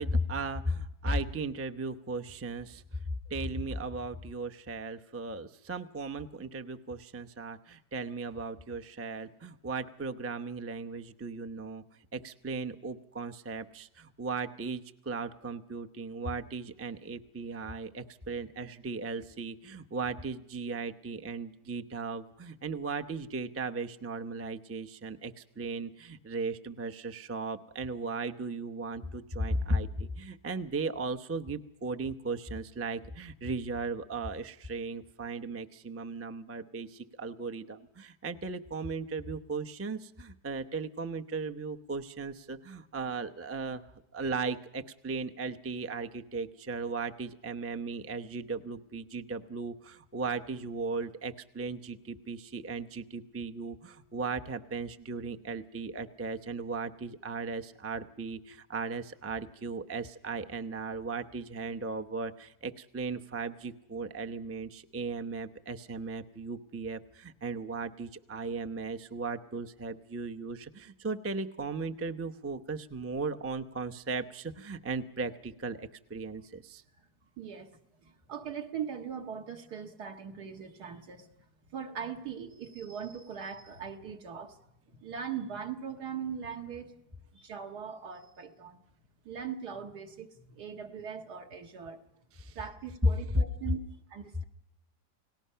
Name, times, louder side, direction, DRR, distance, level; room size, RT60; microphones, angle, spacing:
voice 1, 0.0-3.0 3.3-11.8 12.1-43.8 44.1-76.8 92.3-92.6 93.3-93.4, right 3 dB, 20° right, 7 dB, 0.4 m, -36 dB
voice 2, 77.4-81.3 81.7-84.6 84.9-87.0 87.3-88.8 89.3-92.0 92.6-93.8 94.1-94.4, right 7 dB, 70° right, 4 dB, 2.2 m, -40 dB
29.5 x 18.5 x 5.7 m, 0.82 s
omnidirectional pair, 1.8 m